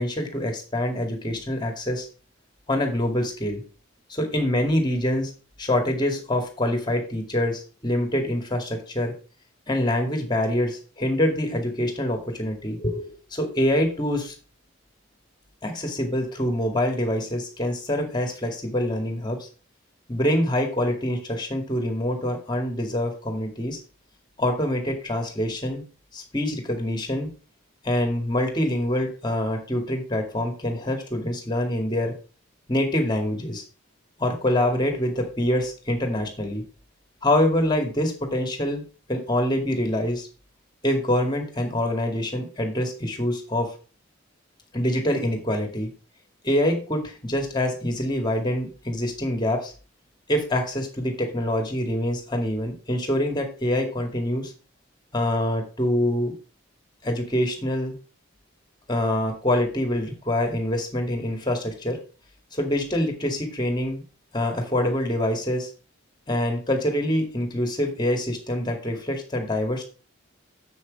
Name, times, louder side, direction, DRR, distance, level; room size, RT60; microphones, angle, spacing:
voice 1, 0.0-2.1 2.7-3.6 4.1-5.3 5.6-9.1 9.7-14.3 15.6-19.5 20.1-23.8 24.4-25.8 26.1-27.3 27.8-32.1 32.7-33.6 34.2-36.6 37.2-38.8 39.1-40.3 40.8-43.7 44.7-45.9 46.4-49.7 50.3-54.5 55.1-56.3 57.0-58.0 58.9-62.0 62.5-64.0 64.3-65.7 66.3-69.8, left 1 dB, 20° left, 4 dB, 2.1 m, -25 dB
7.5 x 6.4 x 5.2 m, 0.36 s
head